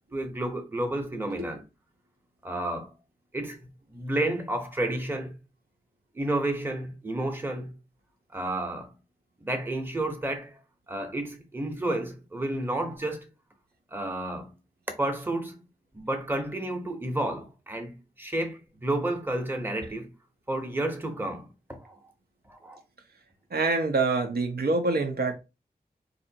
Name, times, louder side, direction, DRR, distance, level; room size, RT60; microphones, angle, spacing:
voice 1, 0.1-1.6 2.4-2.9 3.3-5.4 6.1-7.7 8.3-8.9 9.4-10.6 10.9-13.3 13.9-14.5 15.0-15.6 15.9-20.1 20.5-22.1 22.4-22.8, right 1 dB, 15° right, 0.8 m, -31 dB
voice 2, 23.5-25.4, right 3 dB, 75° right, 0.7 m, -26 dB
4.1 x 2.6 x 2.7 m
wide cardioid pair, 80°, 16 cm